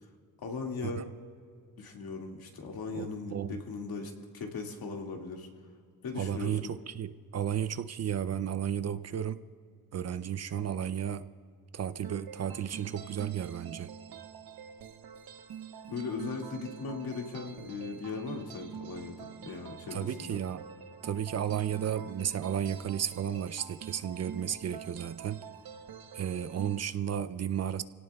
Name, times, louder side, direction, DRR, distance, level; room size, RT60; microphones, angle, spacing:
voice 1, 0.4-1.0 1.8-5.5 6.0-6.8 15.9-20.4, left 4 dB, 75° left, 1 dB, 2.1 m, -38 dB
voice 2, 2.9-3.6 6.2-9.4 9.9-11.2 11.7-13.9 19.9-20.6 21.0-25.4 26.1-27.8, right 9 dB, 45° right, 13 dB, 0.4 m, -33 dB
Krucifix Productions left unattended, 12.0-26.8, right 8 dB, 80° right, 1.0 m, -46 dB
28.5 x 17.5 x 2.3 m, 2.2 s
wide cardioid pair, 165°, 37 cm